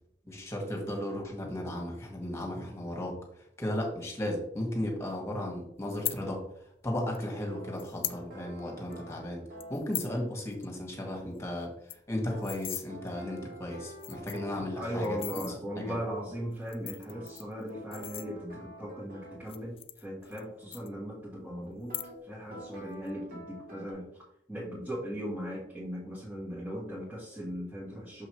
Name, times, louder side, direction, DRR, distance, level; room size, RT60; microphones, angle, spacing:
voice 1, 0.3-3.2 3.6-6.4 6.8-9.4 9.7-15.4 15.8-16.0, left 1 dB, 15° left, 0 dB, 1.9 m, -35 dB
sound 1, 5.9-6.2 7.1-7.2 7.8-8.2 8.6-8.7 8.9-9.1 9.6-10.2 10.5-10.7 10.9-11.0 11.3-11.4 11.7-12.8 13.5-13.6 13.9-14.5 15.0-15.5 16.5-18.7 19.4-20.4 20.7-21.3 21.8-22.4 22.7-23.1, left 12 dB, 35° left, 0.4 m, -39 dB
sound 2, 7.5-9.8 12.3-14.7 17.1-19.4 21.9-22.1 22.5-23.9, right 1 dB, 55° right, 1.9 m, -47 dB
voice 2, 14.7-22.0 22.2-28.3, equal, 10° right, -6 dB, 1.6 m, -38 dB
6.7 x 5.4 x 3.2 m, 0.74 s
head